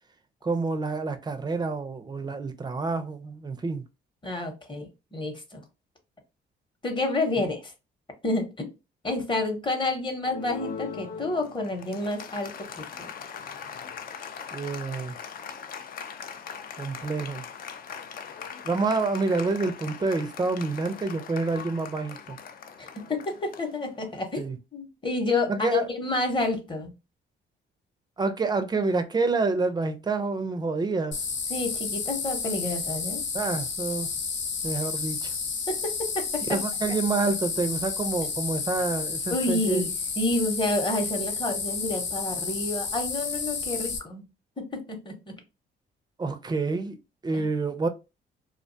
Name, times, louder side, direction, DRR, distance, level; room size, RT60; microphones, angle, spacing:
voice 1, 0.4-3.9 14.5-15.1 16.8-17.4 18.6-22.4 24.4-24.6 25.5-25.9 28.2-31.2 33.3-34.1 34.6-35.3 36.5-39.8 46.2-47.0 47.2-47.9, right 3 dB, 20° right, 0.4 m, -28 dB
voice 2, 4.2-5.6 6.8-7.7 8.2-8.7 9.0-13.1 22.8-26.9 31.5-33.2 35.7-36.6 39.3-39.8 40.2-44.2 44.6-45.4 47.3-47.5, left 2 dB, 25° left, 0.8 m, -29 dB
Applause, 10.2-24.3, left 7 dB, 50° left, 0.4 m, -41 dB
sound 1, 31.1-44.0, left 5 dB, 70° left, 0.7 m, -31 dB
2.4 x 2.2 x 2.6 m
cardioid pair, 90°, 20 cm